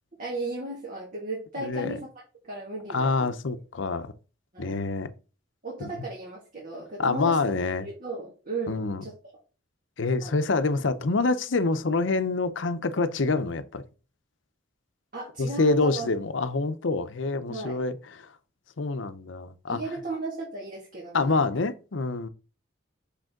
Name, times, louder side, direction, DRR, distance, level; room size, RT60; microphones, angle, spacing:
voice 1, 0.2-2.1 2.4-3.3 4.5-4.9 5.6-7.5 7.8-9.1 10.2-10.5 15.1-16.1 17.5-17.8 19.7-21.4, right 2 dB, 45° right, 2.1 m, -35 dB
voice 2, 1.6-2.0 2.9-4.1 4.6-5.1 5.8-5.9 7.0-7.9 8.7-9.0 10.0-13.8 15.4-17.9 18.8-19.8 21.1-22.3, left 3 dB, 75° left, 0.7 m, -26 dB
6.6 x 5.2 x 3.7 m
head